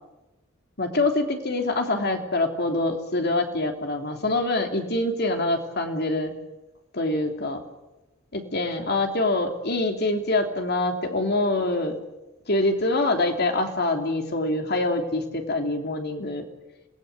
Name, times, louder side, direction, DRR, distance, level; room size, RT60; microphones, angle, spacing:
voice 1, 0.8-6.3 6.9-7.6 8.3-12.0 12.5-16.5, left 2 dB, 55° left, 5 dB, 3.1 m, -25 dB
26.5 x 19.0 x 9.6 m, 1.0 s
head